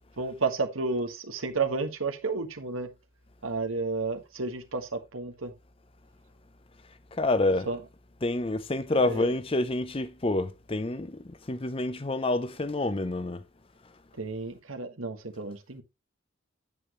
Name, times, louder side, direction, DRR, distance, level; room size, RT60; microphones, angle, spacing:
voice 1, 0.2-2.9 3.4-5.5 7.7-7.8 8.9-9.3 14.2-15.8, right 3 dB, 85° right, 1.6 m, -31 dB
voice 2, 7.1-7.7 8.2-13.4, left 2 dB, 25° left, 0.6 m, -28 dB
9.0 x 8.5 x 3.1 m
head